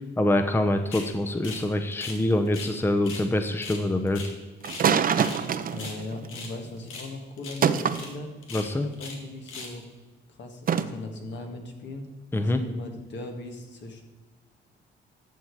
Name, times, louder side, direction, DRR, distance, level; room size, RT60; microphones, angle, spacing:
voice 1, 0.2-4.3 8.5-8.9 12.3-12.6, left 1 dB, 10° left, 7 dB, 0.8 m, -25 dB
sound 1, 0.9-1.1 1.4-1.7 1.9-2.7 3.0-3.3 3.6-4.9 5.2-5.4 5.7-6.5 6.9-7.1 7.4-7.6 7.9-8.1 8.4-9.2 9.5-9.8, left 4 dB, 90° left, 2.0 m, -40 dB
sound 2, 4.6-6.7 7.6-8.0 10.7-10.8, right 7 dB, 45° right, 0.7 m, -24 dB
voice 2, 5.7-8.3 8.8-9.9 10.3-12.1 12.4-14.0, left 2 dB, 65° left, 4 dB, 1.9 m, -38 dB
12.0 x 7.2 x 4.8 m, 1.3 s
cardioid pair, 90°, 20 cm